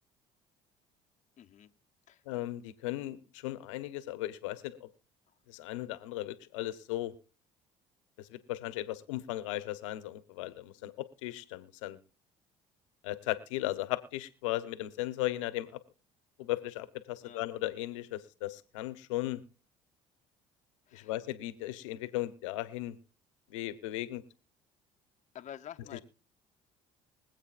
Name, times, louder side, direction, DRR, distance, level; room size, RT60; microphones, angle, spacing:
voice 1, 1.4-1.7 2.1-2.2 17.2-17.4 20.9-21.1 25.3-26.0, left 10 dB, 50° left, 7 dB, 0.9 m, -48 dB
voice 2, 2.3-4.9 5.5-7.1 8.2-12.0 13.0-15.8 16.4-19.4 20.9-23.0 23.5-24.2 25.9-26.0, left 16 dB, 90° left, 14 dB, 1.0 m, -36 dB
24.0 x 8.2 x 2.5 m, 0.40 s
supercardioid pair, 70°, 16 cm